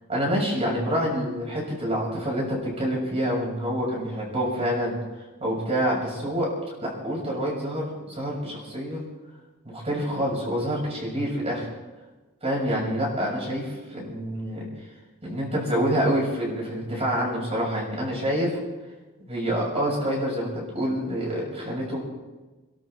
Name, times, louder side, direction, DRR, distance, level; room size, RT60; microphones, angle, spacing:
voice 1, 0.1-4.9 5.4-6.5 6.8-9.0 9.6-11.7 12.4-14.7 15.2-18.6 19.3-22.0, equal, 30° right, -3 dB, 7.1 m, -27 dB
29.0 x 12.5 x 3.8 m, 1.2 s
head